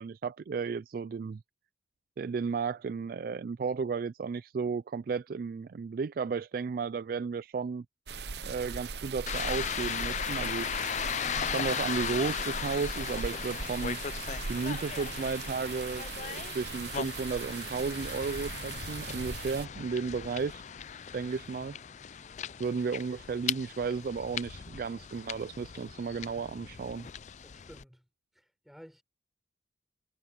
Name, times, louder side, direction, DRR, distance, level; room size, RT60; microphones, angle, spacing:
voice 1, 0.0-1.4 2.2-7.9 8.4-10.9 11.5-14.0 14.5-20.6 21.1-21.8 22.6-27.1, right 5 dB, 55° right, 0.3 m, -34 dB
sound 1, 8.1-19.7, right 5 dB, 70° right, 0.9 m, -40 dB
sound 2, 9.3-27.8, left 8 dB, 40° left, 0.4 m, -37 dB
voice 2, 27.4-28.1 28.3-29.0, equal, ahead, 4.2 m, -53 dB
head